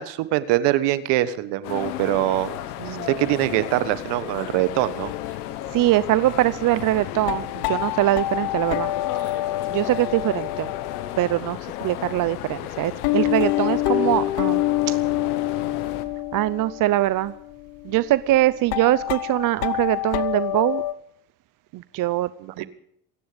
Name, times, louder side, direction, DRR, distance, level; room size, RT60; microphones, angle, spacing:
voice 1, 0.0-2.6 3.0-5.1 22.4-22.7, right 15 dB, 65° right, 13 dB, 1.5 m, -23 dB
sound 1, 1.6-16.0, left 13 dB, 85° left, 1.4 m, -34 dB
sound 2, 5.0-11.5 12.2-12.3 12.8-20.9, left 15 dB, 70° left, 1.1 m, -27 dB
voice 2, 5.7-8.9 9.2-9.3 9.7-10.7 11.2-14.6 14.9-15.0 16.3-17.3 17.8-20.8 21.7-22.3 22.6-22.7, right 15 dB, 45° right, 16 dB, 0.6 m, -22 dB
27.0 x 10.0 x 5.2 m, 0.70 s
supercardioid pair, 90°, 44 cm